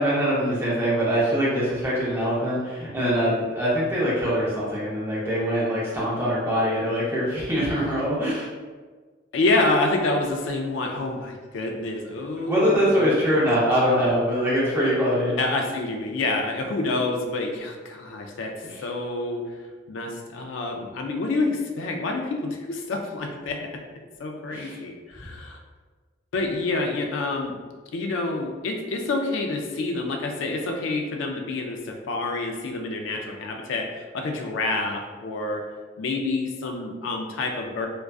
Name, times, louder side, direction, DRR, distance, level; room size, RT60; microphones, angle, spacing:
voice 1, 0.0-8.5 12.5-15.3 18.6-18.8 24.5-24.8, equal, 10° right, -8 dB, 0.6 m, -23 dB
voice 2, 9.3-13.1 15.4-18.5 18.8-19.5 19.9-23.6 24.2-25.6 26.3-27.6 27.9-35.6 36.0-37.9, left 2 dB, 80° left, 3 dB, 0.3 m, -27 dB
2.4 x 2.2 x 2.3 m, 1.4 s
head